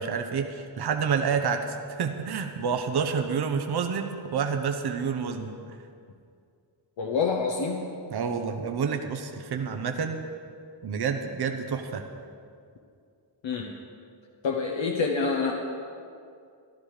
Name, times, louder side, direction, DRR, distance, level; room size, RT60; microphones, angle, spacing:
voice 1, 0.0-5.6 8.1-10.2 10.8-12.0, right 6 dB, 55° right, 5 dB, 1.0 m, -28 dB
voice 2, 7.0-7.8 13.4-13.7 14.4-15.5, left 4 dB, 75° left, 0 dB, 1.1 m, -27 dB
14.0 x 12.5 x 5.0 m, 2.4 s
wide cardioid pair, 150°, 46 cm